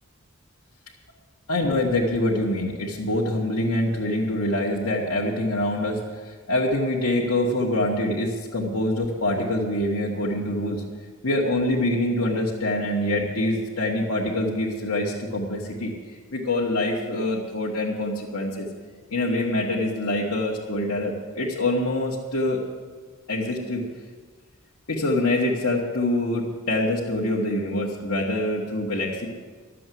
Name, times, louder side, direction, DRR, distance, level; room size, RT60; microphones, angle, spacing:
voice 1, 1.5-10.8 11.2-18.7 19.1-22.6 23.3-23.8 24.9-29.3, left 1 dB, 80° left, -4 dB, 1.6 m, -25 dB
12.5 x 7.6 x 9.2 m, 1.5 s
head